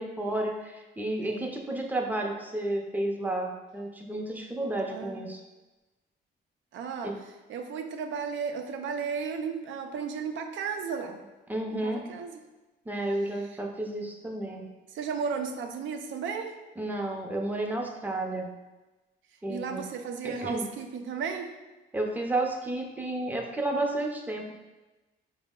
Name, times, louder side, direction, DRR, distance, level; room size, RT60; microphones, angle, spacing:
voice 1, 0.0-5.4 7.0-7.1 11.5-12.0 12.9-14.7 16.8-18.5 19.4-19.8 20.2-20.7 21.9-24.5, right 1 dB, 10° right, 1 dB, 0.6 m, -31 dB
voice 2, 1.2-1.5 4.9-5.3 6.7-7.1 7.5-11.2 11.7-12.4 13.3-13.5 14.9-16.6 19.5-21.6, right 6 dB, 75° right, 5 dB, 0.5 m, -34 dB
4.7 x 2.0 x 3.6 m, 1.1 s
cardioid pair, 90°, 20 cm